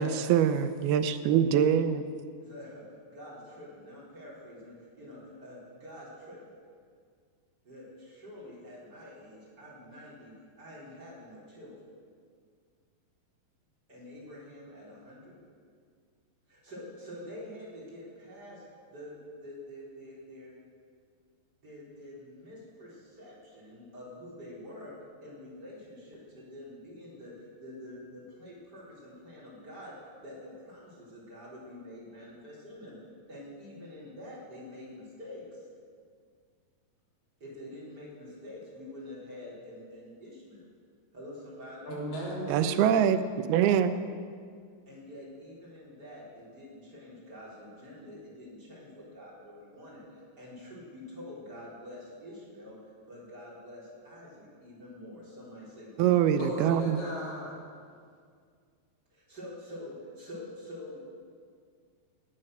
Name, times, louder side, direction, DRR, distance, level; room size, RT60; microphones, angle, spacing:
voice 1, 0.0-2.1 42.5-43.2 43.5-44.1 56.0-57.0, right 9 dB, 85° right, 10 dB, 2.7 m, -24 dB
voice 2, 2.4-6.4 7.6-11.7 13.9-15.4 16.5-18.6 18.9-20.5 21.6-24.9 25.2-33.0 33.3-35.7 37.4-40.6 41.1-41.9 44.9-52.8 53.0-56.5 59.1-61.0, left 1 dB, 25° right, -6 dB, 4.6 m, -47 dB
voice 3, 41.9-43.0 56.4-57.5, equal, 60° left, -4 dB, 5.1 m, -36 dB
18.5 x 11.0 x 6.6 m, 2.1 s
omnidirectional pair, 4.4 m